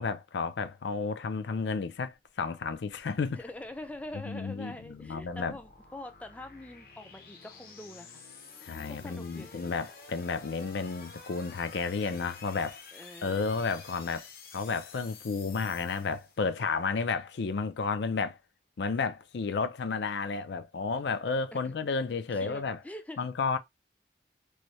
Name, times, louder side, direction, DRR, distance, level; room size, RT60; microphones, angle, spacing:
voice 1, 0.0-3.4 4.2-5.6 8.6-12.8 13.2-14.3 14.5-18.4 18.8-22.8 23.2-23.6, left 4 dB, 80° left, 0.5 m, -32 dB
sound 1, 2.2-16.7, left 4 dB, 55° left, 0.7 m, -51 dB
voice 2, 3.3-8.2 8.9-9.8 12.9-13.5 21.5-21.8 22.4-23.3, left 1 dB, 10° left, 0.3 m, -44 dB
3.2 x 2.7 x 3.0 m
head